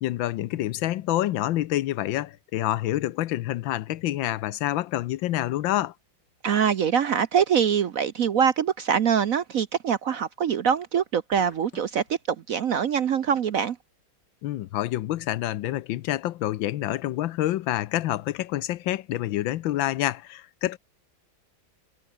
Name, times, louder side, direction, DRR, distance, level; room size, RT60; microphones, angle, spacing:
voice 1, 0.0-5.9 14.4-20.8, left 14 dB, 80° left, 1.5 m, -27 dB
voice 2, 6.4-13.8, right 7 dB, 60° right, 1.0 m, -24 dB
sound 1, 11.3-12.2, left 2 dB, 60° left, 6.7 m, -49 dB
omnidirectional pair, 2.1 m